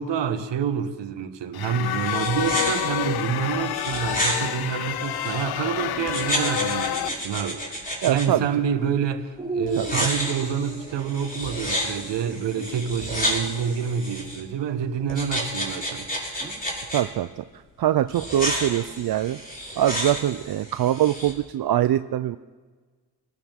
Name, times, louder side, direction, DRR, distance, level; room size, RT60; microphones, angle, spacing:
voice 1, 0.0-16.1, right 7 dB, 75° right, 1.5 m, -27 dB
sound 1, 1.5-7.1, left 13 dB, 60° left, 0.6 m, -28 dB
sound 2, 1.8-5.4 6.1-8.3 9.7-14.4 15.1-17.0 18.1-21.3, equal, 20° left, 6.3 m, -31 dB
sound 3, 5.8-7.7 8.5-8.9 9.4-14.1 14.7-14.8 16.4-16.6, right 2 dB, 10° right, 5.6 m, -37 dB
voice 2, 8.0-8.5 9.8-10.1 16.3-16.5 16.9-17.4 17.8-19.4 19.8-22.4, right 12 dB, 55° right, 0.6 m, -23 dB
28.0 x 13.0 x 3.7 m
supercardioid pair, 65°, 43 cm